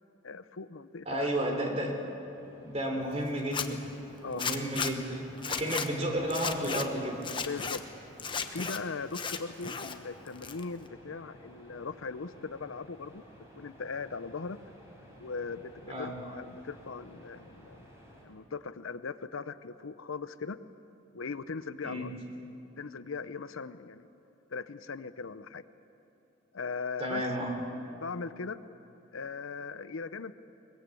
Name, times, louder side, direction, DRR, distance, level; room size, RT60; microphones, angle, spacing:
voice 1, 0.2-1.3 4.2-4.4 7.5-7.8 8.3-13.2 13.6-14.6 15.2-17.9 18.2-20.6 21.1-22.1 22.8-24.1 24.5-25.6 26.5-27.3 28.0-28.6 29.1-30.3, left 4 dB, 75° left, 13 dB, 0.7 m, -39 dB
voice 2, 1.0-2.0 2.6-3.8 4.3-7.2 15.9-16.1 21.8-22.1 27.0-27.5, right 1 dB, 30° right, 2 dB, 3.4 m, -32 dB
sound 1, 1.6-18.2, equal, 15° right, 5.2 m, -55 dB
Zipper (clothing), 3.4-3.7 4.4-4.9 5.4-5.9 6.3-6.8 7.2-7.8 8.2-8.8 9.1-9.9 10.3-10.9, left 6 dB, 25° left, 1.0 m, -34 dB
22.0 x 21.0 x 8.4 m, 2.9 s
head